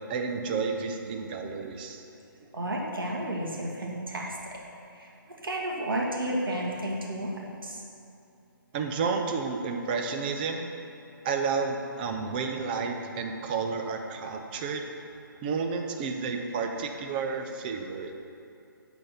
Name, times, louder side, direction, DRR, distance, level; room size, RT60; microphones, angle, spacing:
voice 1, 0.1-2.0 8.7-10.7 11.2-14.9 15.4-18.1, right 5 dB, 25° right, 4 dB, 0.6 m, -31 dB
voice 2, 2.5-4.4 4.9-5.1 5.4-7.8, right 1 dB, 80° right, -3 dB, 1.9 m, -32 dB
10.5 x 4.1 x 5.8 m, 2.7 s
figure-of-eight pair, 150°, 12 cm